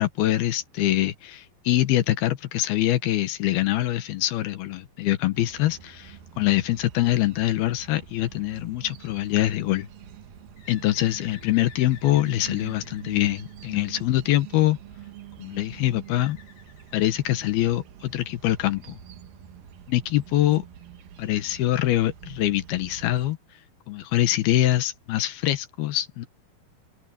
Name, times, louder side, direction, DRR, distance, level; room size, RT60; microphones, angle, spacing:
voice 1, 0.0-9.9 10.7-14.8 15.4-16.4 16.9-19.0 19.9-20.6 21.2-23.4 23.9-26.3, left 14 dB, 75° left, 3.0 m, -24 dB
sound 1, 5.3-23.3, right 9 dB, 65° right, 3.2 m, -46 dB
Bird, 10.6-14.3 16.0-17.8, left 7 dB, 50° left, 7.1 m, -51 dB
open air
omnidirectional pair, 4.5 m